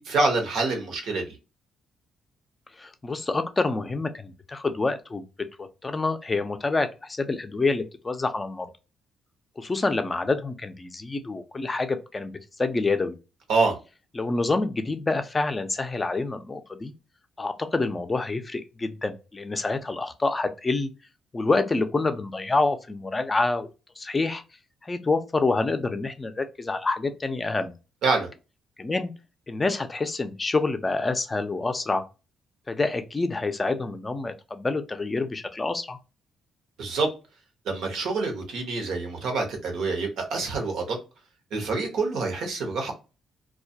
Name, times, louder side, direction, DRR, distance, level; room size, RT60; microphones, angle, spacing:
voice 1, 0.0-1.4 13.5-13.8 28.0-28.3 36.8-37.1 37.6-41.0 41.5-42.9, right 3 dB, 80° right, 0.9 m, -26 dB
voice 2, 2.8-5.2 5.6-8.7 9.6-12.3 12.6-13.1 14.1-16.9 17.4-20.9 21.3-23.7 24.0-24.4 24.8-27.7 28.8-29.1 29.5-32.0 32.7-36.0, left 3 dB, 25° left, 0.4 m, -27 dB
2.3 x 2.1 x 2.6 m
cardioid pair, 90°, 0 cm